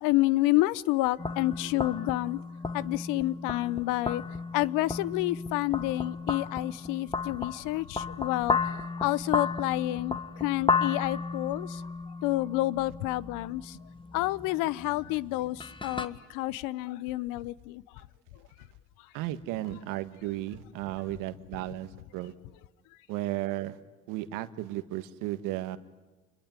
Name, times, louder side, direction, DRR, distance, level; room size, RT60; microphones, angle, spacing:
voice 1, 0.0-2.4 2.7-4.2 4.5-8.6 9.0-11.8 12.2-13.8 14.1-17.8, left 18 dB, 80° left, 0.8 m, -29 dB
sound 1, 1.2-16.1, left 4 dB, 15° left, 1.7 m, -34 dB
voice 2, 19.1-22.3 23.1-23.8 24.1-25.8, right 15 dB, 85° right, 1.6 m, -34 dB
27.5 x 22.0 x 9.6 m
supercardioid pair, 85°, 32 cm